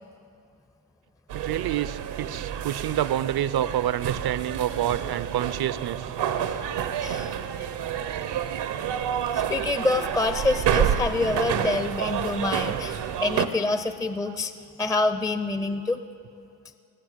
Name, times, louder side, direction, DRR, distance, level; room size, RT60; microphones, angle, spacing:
voice 1, 1.3-6.1 14.3-14.4, right 11 dB, 60° right, 16 dB, 0.6 m, -28 dB
sound 1, 1.3-13.5, right 9 dB, 80° right, 0.9 m, -29 dB
voice 2, 7.0-7.4 9.3-14.5 14.8-16.0, left 2 dB, 10° left, 11 dB, 0.5 m, -26 dB
19.5 x 8.0 x 8.0 m, 2.5 s
cardioid pair, 90°, 42 cm